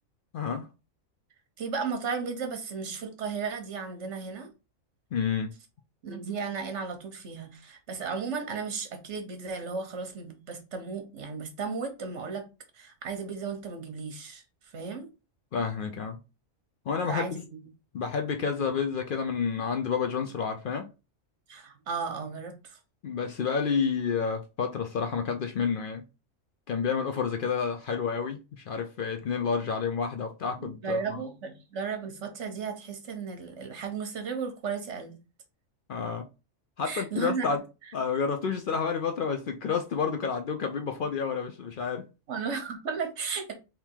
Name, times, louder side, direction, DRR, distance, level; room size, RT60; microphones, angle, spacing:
voice 1, 0.3-0.7 5.1-5.5 15.5-16.2 16.9-17.4 17.9-20.9 23.0-26.0 26.7-31.2 35.9-36.2 36.8-37.6 37.9-42.1, left 6 dB, 60° left, 0.6 m, -30 dB
voice 2, 1.6-4.5 6.0-12.5 12.7-14.4 14.7-15.1 17.0-17.6 21.5-22.8 30.6-35.2 36.8-37.5 42.3-43.5, right 5 dB, 65° right, 1.3 m, -35 dB
3.7 x 2.8 x 4.5 m
omnidirectional pair, 1.3 m